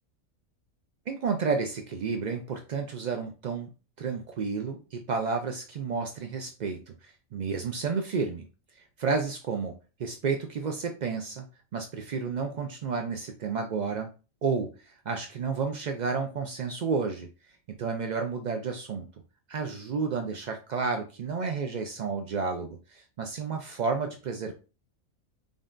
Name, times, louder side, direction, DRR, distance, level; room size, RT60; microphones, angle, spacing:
voice 1, 1.1-3.7 4.0-8.4 9.0-9.7 10.0-11.4 11.7-14.1 14.4-17.3 17.8-19.0 19.5-24.5, right 5 dB, 80° right, 4 dB, 0.4 m, -31 dB
5.3 x 2.6 x 2.4 m, 0.32 s
omnidirectional pair, 1.4 m